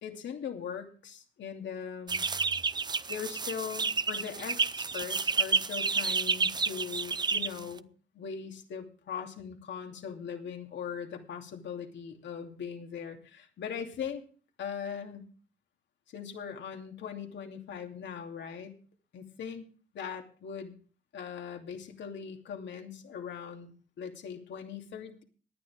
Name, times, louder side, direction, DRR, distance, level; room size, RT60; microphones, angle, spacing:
voice 1, 0.0-2.3 3.1-7.9 8.1-14.2 14.6-15.2 16.1-18.7 19.1-19.7 19.9-20.8 21.1-25.2, left 7 dB, 65° left, 3 dB, 2.7 m, -40 dB
chicks in hen house low ceiling barn room crispy, 2.1-7.8, right 4 dB, 20° right, 0.5 m, -30 dB
18.5 x 11.0 x 3.6 m, 0.41 s
cardioid pair, 90°, 20 cm